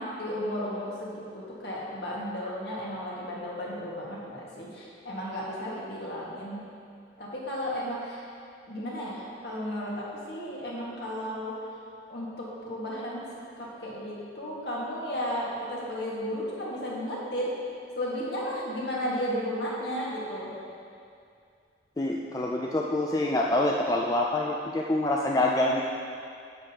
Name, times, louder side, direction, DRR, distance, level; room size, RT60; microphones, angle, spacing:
voice 1, 0.0-6.6 7.2-8.2 8.7-11.5 12.1-13.3 13.6-17.5 17.9-20.5, equal, 60° left, -5 dB, 1.7 m, -34 dB
voice 2, 22.0-25.8, left 1 dB, 20° left, -1 dB, 0.3 m, -26 dB
9.6 x 7.7 x 2.9 m, 2.4 s
head